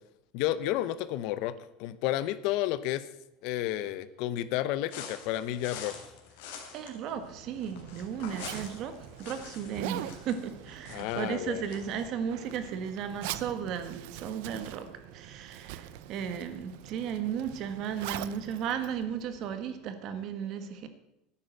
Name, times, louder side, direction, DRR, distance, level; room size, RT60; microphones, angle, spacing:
voice 1, 0.3-1.5 1.8-3.0 3.4-6.0 10.9-11.6, left 13 dB, 55° left, 15 dB, 0.8 m, -31 dB
sound 1, 4.9-12.1, left 7 dB, 75° left, 3.2 m, -46 dB
voice 2, 6.7-20.9, right 8 dB, 40° right, 10 dB, 1.5 m, -35 dB
Zipper (clothing), 7.1-19.7, right 13 dB, 65° right, 0.7 m, -43 dB
12.5 x 9.7 x 7.8 m, 0.84 s
cardioid pair, 175°, 0 cm